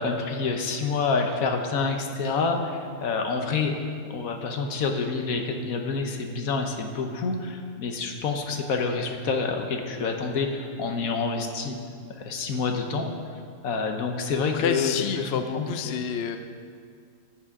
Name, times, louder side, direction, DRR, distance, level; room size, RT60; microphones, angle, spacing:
voice 1, 0.0-3.8 4.1-11.8 12.2-13.1 13.6-14.9 15.2-15.3 15.5-15.7, left 4 dB, 75° left, 4 dB, 1.4 m, -27 dB
voice 2, 14.5-16.4, left 7 dB, 60° left, 8 dB, 0.7 m, -28 dB
14.0 x 8.9 x 3.7 m, 2.1 s
omnidirectional pair, 1.5 m